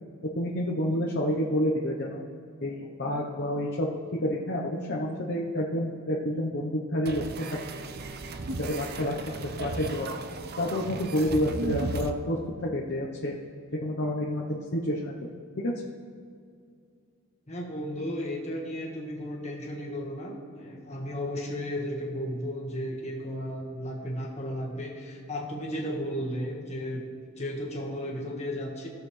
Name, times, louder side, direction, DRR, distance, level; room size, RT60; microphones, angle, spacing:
voice 1, 0.4-2.2 2.6-3.9 4.2-7.2 8.6-10.1 10.6-13.3 13.8-15.3 15.6-15.7, equal, 50° left, -3 dB, 0.9 m, -29 dB
sound 1, 7.1-12.1, right 2 dB, 45° right, 0.5 m, -35 dB
voice 2, 17.5-27.0 27.4-28.9, equal, 30° left, -2 dB, 1.6 m, -34 dB
17.5 x 6.6 x 3.3 m, 2.3 s
head